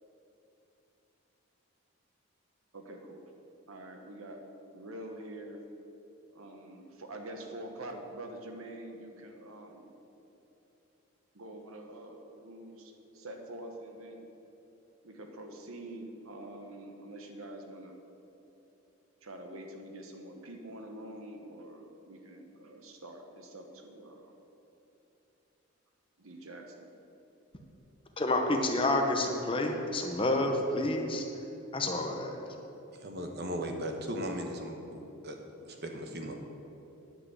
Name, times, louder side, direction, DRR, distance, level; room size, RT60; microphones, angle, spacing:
voice 1, 2.7-3.2 3.7-4.4 4.7-5.6 6.3-9.9 11.3-14.3 15.0-17.9 19.2-24.3 26.2-26.9, right 1 dB, 80° right, 3 dB, 1.3 m, -46 dB
voice 2, 28.2-31.2 31.7-32.4, left 2 dB, 25° left, 3 dB, 0.9 m, -29 dB
voice 3, 33.0-36.4, equal, 50° right, 3 dB, 1.2 m, -37 dB
10.0 x 6.1 x 8.0 m, 3.0 s
head